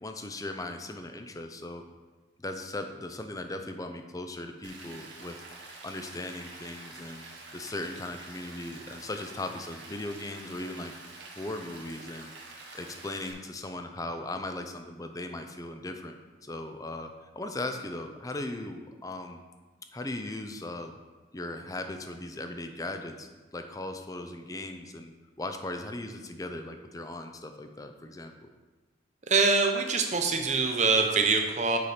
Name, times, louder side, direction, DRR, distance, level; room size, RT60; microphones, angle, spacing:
voice 1, 0.0-1.8 2.4-5.3 5.8-7.2 7.5-10.9 11.4-12.3 12.7-17.1 17.4-19.4 19.9-20.9 21.3-28.3, left 2 dB, 20° left, 6 dB, 0.5 m, -38 dB
Rain, 4.6-13.3, right 3 dB, 70° right, 1.5 m, -47 dB
voice 2, 29.3-31.8, right 4 dB, 40° right, 4 dB, 0.8 m, -24 dB
6.9 x 5.7 x 5.0 m, 1.3 s
head